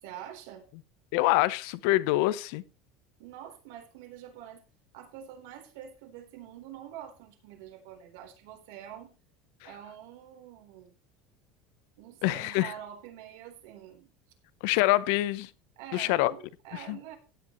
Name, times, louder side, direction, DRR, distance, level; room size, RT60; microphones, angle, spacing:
voice 1, 0.0-0.7 3.2-4.6 4.9-9.1 9.6-10.9 12.0-14.1 15.8-17.2, right 10 dB, 75° right, 3.7 m, -46 dB
voice 2, 1.1-2.6 12.2-12.7 14.6-15.5 15.9-16.3 16.9-17.0, left 17 dB, 65° left, 0.7 m, -25 dB
16.0 x 10.0 x 3.1 m
cardioid pair, 175°, 0 cm